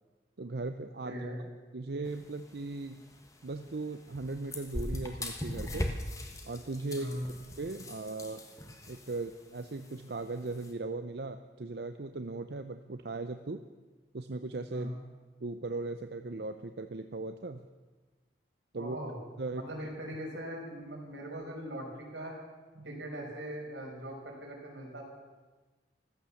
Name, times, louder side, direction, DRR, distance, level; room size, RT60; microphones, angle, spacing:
voice 1, 0.4-1.3 1.7-3.0 3.4-5.9 6.5-7.2 7.6-8.4 8.9-13.6 14.1-14.9 15.4-17.6 18.7-19.0 19.4-19.7 22.8-23.0, right 3 dB, 60° right, 8 dB, 0.6 m, -38 dB
voice 2, 1.0-1.4 7.0-7.3 14.7-15.0 18.8-19.2 19.5-22.3 22.8-25.0, right 1 dB, 85° right, -1 dB, 5.4 m, -40 dB
sound 1, 2.0-10.7, left 1 dB, 20° left, 1.4 m, -41 dB
15.5 x 13.5 x 7.1 m, 1.3 s
head